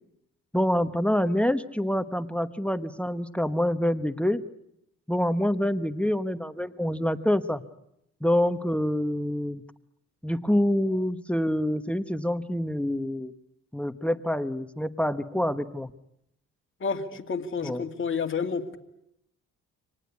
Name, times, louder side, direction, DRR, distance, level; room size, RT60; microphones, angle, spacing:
voice 1, 0.5-4.4 5.1-7.6 8.2-9.6 10.2-13.3 13.7-15.9 17.6-17.8, left 1 dB, 5° left, 13 dB, 1.1 m, -26 dB
voice 2, 16.8-18.8, left 5 dB, 40° left, 4 dB, 2.6 m, -30 dB
26.0 x 19.0 x 9.7 m, 0.79 s
cardioid pair, 90°, 30 cm